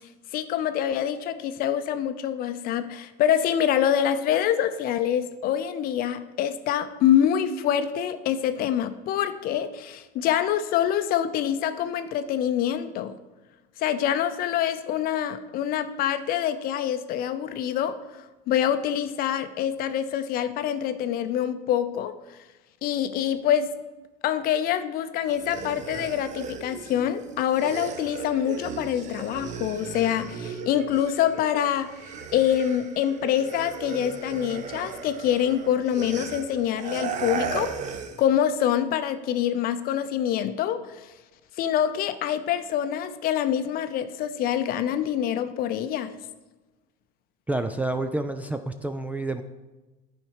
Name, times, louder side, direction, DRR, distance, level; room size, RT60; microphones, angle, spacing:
voice 1, 0.3-13.1 13.8-18.0 18.5-22.1 22.8-23.7 24.2-31.9 32.3-37.7 38.2-40.8 41.6-46.1, left 10 dB, 45° left, 11 dB, 0.6 m, -25 dB
sound 1, 25.3-31.5 31.8-38.3, right 6 dB, 35° right, 0.8 m, -36 dB
sound 2, 28.1-28.8 29.1-30.9 31.3-31.6 32.1-32.7 33.1-33.9 34.4-35.0 35.4-35.6 36.2-36.8 37.1-37.2, right 5 dB, 70° right, 1.1 m, -45 dB
voice 2, 47.5-49.4, right 2 dB, 5° right, 8 dB, 0.3 m, -29 dB
10.5 x 4.5 x 4.8 m, 1.1 s
supercardioid pair, 115°, 20 cm